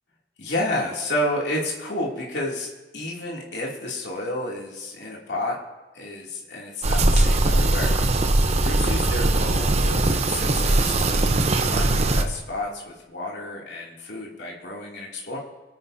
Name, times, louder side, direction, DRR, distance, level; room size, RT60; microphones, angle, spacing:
voice 1, 0.4-5.6 5.9-8.0 8.2-11.3 11.6-15.4, left 1 dB, 75° left, -3 dB, 2.7 m, -31 dB
sound 1, 6.8-12.2, right 2 dB, 35° right, 0.8 m, -20 dB
25.0 x 9.5 x 2.7 m, 1.3 s
head